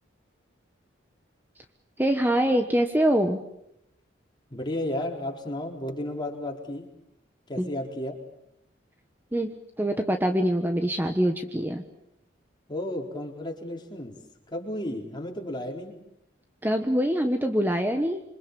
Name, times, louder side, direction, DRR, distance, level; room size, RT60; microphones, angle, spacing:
voice 1, 2.0-3.4 7.6-7.7 9.3-11.8 16.6-18.2, equal, 10° right, 6 dB, 1.2 m, -24 dB
voice 2, 4.5-6.9 7.5-8.2 12.7-14.2 14.5-16.0, left 1 dB, 25° left, 1 dB, 4.5 m, -33 dB
27.5 x 25.0 x 7.0 m, 0.78 s
head